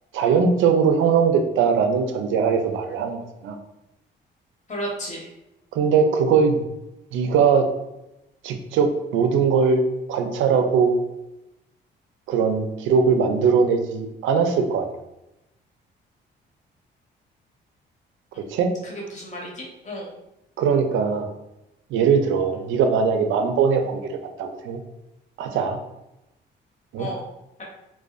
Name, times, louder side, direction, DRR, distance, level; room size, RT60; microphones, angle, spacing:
voice 1, 0.1-3.2 3.4-3.6 5.7-6.6 7.1-7.7 8.4-9.8 10.1-10.9 12.3-14.9 18.4-18.7 20.6-21.3 21.9-24.1 24.4-24.8 25.4-25.8 26.9-27.1, right 6 dB, 80° right, 6 dB, 0.4 m, -20 dB
voice 2, 4.7-5.3 18.3-18.4 18.8-20.1 27.0-27.2, equal, 35° left, -3 dB, 0.9 m, -33 dB
2.5 x 2.2 x 2.3 m, 0.91 s
cardioid pair, 90°, 20 cm